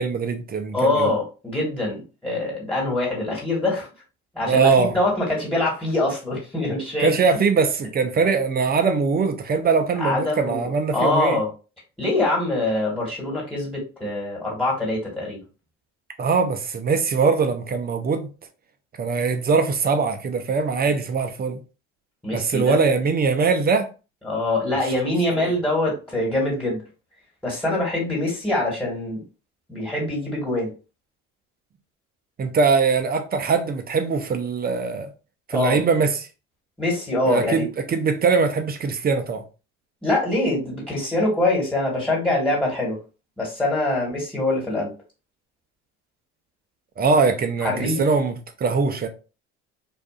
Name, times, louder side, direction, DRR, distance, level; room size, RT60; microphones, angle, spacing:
voice 1, 0.0-1.1 4.5-4.9 7.0-11.4 16.2-18.3 19.0-21.6 22.3-23.9 24.8-24.9 25.3-25.4 32.4-35.1 35.5-36.3 37.3-39.4 47.0-49.1, right 5 dB, 25° right, 0.5 m, -22 dB
voice 2, 0.7-3.9 4.3-7.1 10.0-11.5 12.0-15.4 22.2-22.8 24.2-26.8 27.4-29.2 29.7-30.7 35.5-35.8 36.8-37.7 40.0-43.0 43.4-44.9 47.6-48.0, left 2 dB, 5° left, 1.5 m, -24 dB
2.5 x 2.3 x 2.4 m
hypercardioid pair, 75°, 34 cm